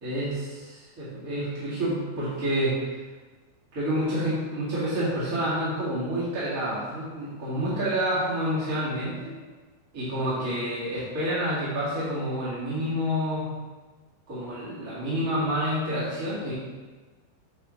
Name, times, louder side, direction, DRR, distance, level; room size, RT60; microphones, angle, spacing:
voice 1, 0.0-2.8 3.7-9.3 9.9-13.5 14.3-16.5, equal, 35° right, -11 dB, 1.3 m, -28 dB
7.4 x 6.5 x 3.2 m, 1.3 s
omnidirectional pair, 5.3 m